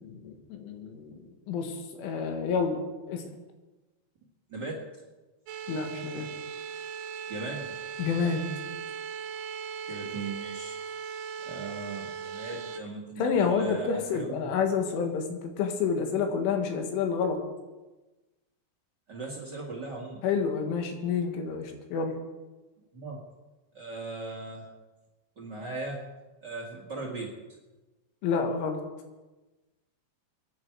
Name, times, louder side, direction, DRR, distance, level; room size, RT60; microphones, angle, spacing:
voice 1, 0.0-2.8 3.1-3.3 5.7-6.3 8.0-8.5 13.2-17.4 20.2-22.2 28.2-28.8, left 6 dB, 85° left, 4 dB, 4.2 m, -29 dB
voice 2, 4.5-4.9 7.3-7.7 9.9-10.8 11.4-14.5 19.1-20.2 22.9-23.2 23.7-24.7 25.3-26.0 26.4-27.4, right 3 dB, 45° right, -1 dB, 1.3 m, -38 dB
sound 1, 5.5-12.8, right 7 dB, 90° right, 3.1 m, -38 dB
24.0 x 11.0 x 4.8 m, 1.2 s
omnidirectional pair, 5.4 m